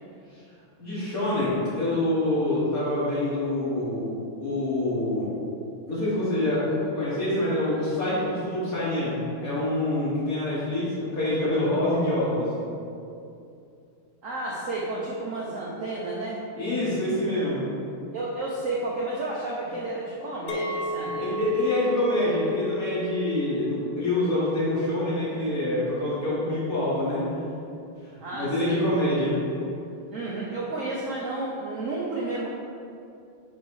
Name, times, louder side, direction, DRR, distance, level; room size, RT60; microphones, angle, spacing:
voice 1, 0.8-4.1 4.4-5.3 5.9-12.5 16.6-17.6 21.0-27.4 28.3-29.4, left 1 dB, 45° left, -9 dB, 1.9 m, -26 dB
voice 2, 14.2-16.4 18.1-21.4 28.2-28.8 30.1-32.5, right 2 dB, 70° right, -5 dB, 0.7 m, -31 dB
Chink clink, 20.5-25.7, left 2 dB, 70° left, 1.0 m, -33 dB
8.6 x 3.2 x 4.7 m, 2.6 s
omnidirectional pair, 2.3 m